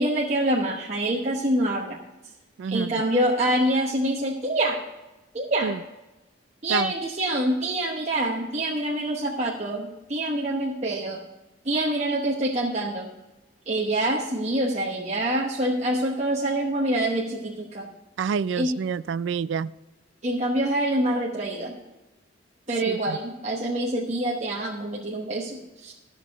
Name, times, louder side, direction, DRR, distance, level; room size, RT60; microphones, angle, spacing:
voice 1, 0.0-2.0 2.7-4.8 5.3-5.8 6.6-11.2 11.6-13.1 13.7-17.9 18.5-18.7 20.2-21.8 22.7-25.9, right 1 dB, 35° right, 1.0 m, -26 dB
voice 2, 2.6-2.9 5.6-5.7 6.7-6.9 18.2-19.7 22.9-23.2, right 6 dB, 70° right, 0.3 m, -28 dB
13.0 x 6.4 x 5.0 m
head